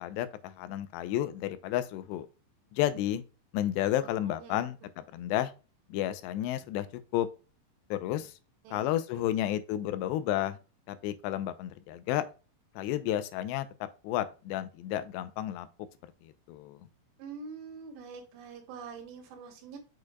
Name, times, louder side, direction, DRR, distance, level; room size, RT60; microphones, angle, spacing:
voice 1, 0.0-2.3 2.7-3.2 3.5-5.5 5.9-6.9 7.1-7.3 7.9-8.3 8.7-10.6 10.9-12.3 12.8-15.7 16.2-16.8, left 12 dB, 90° left, 2.8 m, -31 dB
voice 2, 4.0-4.7 8.7-9.3 17.2-19.8, right 5 dB, 85° right, 3.5 m, -45 dB
6.4 x 6.3 x 2.3 m
omnidirectional pair, 4.9 m